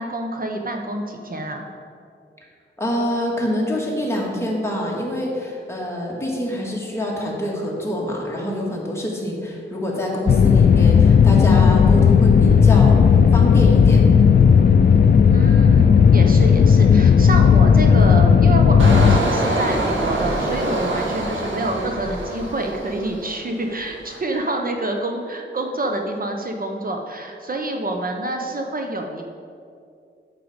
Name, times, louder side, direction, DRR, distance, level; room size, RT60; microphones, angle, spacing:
voice 1, 0.0-1.6 15.3-29.3, right 2 dB, 45° right, 3 dB, 0.9 m, -27 dB
voice 2, 2.8-14.0, left 1 dB, 15° left, -3 dB, 2.0 m, -26 dB
sound 1, 10.3-19.2, left 6 dB, 50° left, 0.4 m, -13 dB
Engine, 18.8-23.5 23.8-24.2, right 1 dB, 70° right, 1.8 m, -25 dB
8.9 x 6.7 x 5.2 m, 2.3 s
wide cardioid pair, 95°, 21 cm